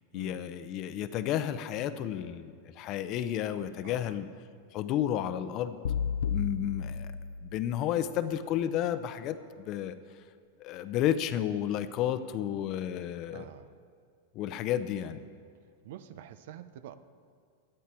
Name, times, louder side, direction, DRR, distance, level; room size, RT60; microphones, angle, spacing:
voice 1, 0.1-4.3 4.7-5.8 6.3-7.1 7.4-10.0 10.6-13.5 14.3-15.2, left 11 dB, 40° left, 12 dB, 0.7 m, -32 dB
voice 2, 3.8-4.2 13.3-13.8 15.8-16.9, right 11 dB, 70° right, 12 dB, 0.8 m, -47 dB
sound 1, 5.8-8.0, left 7 dB, 85° left, 0.6 m, -33 dB
18.0 x 12.0 x 4.5 m, 2.1 s
supercardioid pair, 140°, 0 cm